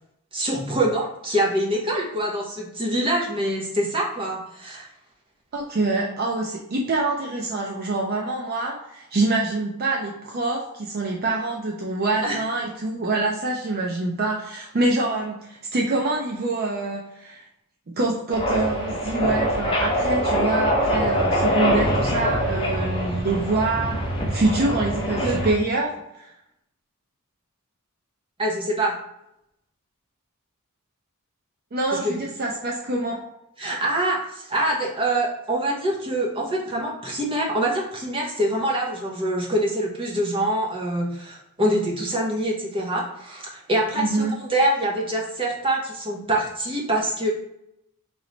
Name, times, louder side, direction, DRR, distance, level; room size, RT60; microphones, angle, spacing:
voice 1, 0.3-4.9 12.2-12.4 25.1-25.4 28.4-28.9 31.9-32.1 33.6-47.3, right 1 dB, 25° right, -1 dB, 0.8 m, -25 dB
voice 2, 5.5-17.4 18.0-24.0 24.3-26.3 31.7-33.2 44.0-44.3, right 2 dB, 45° right, -1 dB, 0.5 m, -25 dB
sound 1, 18.3-25.5, equal, 25° left, 0.9 m, -24 dB
3.2 x 3.0 x 3.9 m, 0.81 s
head